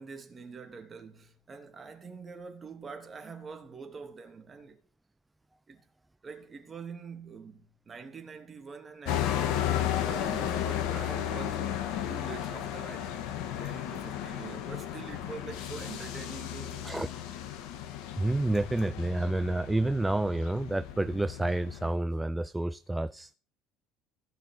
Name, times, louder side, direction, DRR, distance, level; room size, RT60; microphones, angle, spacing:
voice 1, 0.0-4.8 5.7-5.8 6.2-13.3 13.6-16.9, right 5 dB, 30° right, 2.9 m, -45 dB
sound 1, 9.0-21.9, left 10 dB, 60° left, 2.1 m, -34 dB
voice 2, 18.2-23.3, right 2 dB, 10° right, 0.5 m, -29 dB
15.5 x 6.6 x 7.7 m
figure-of-eight pair, 60°, 0 cm